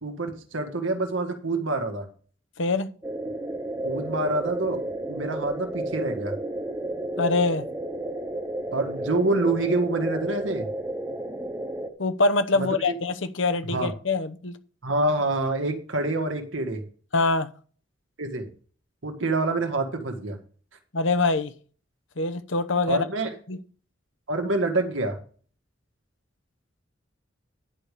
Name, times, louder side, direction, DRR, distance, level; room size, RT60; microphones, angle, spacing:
voice 1, 0.0-2.1 3.8-4.8 5.1-6.4 8.7-10.7 12.5-12.9 13.7-13.9 14.8-16.8 18.2-18.5 19.0-20.4 22.9-23.3 24.3-25.2, right 2 dB, 85° right, 1.7 m, -26 dB
voice 2, 2.6-2.9 7.2-7.6 12.0-14.6 17.1-17.5 20.9-21.5 22.2-23.1 23.5-23.6, left 3 dB, 80° left, 1.0 m, -24 dB
sound 1, 3.0-11.9, right 1 dB, 15° right, 1.0 m, -32 dB
10.5 x 4.9 x 6.8 m
head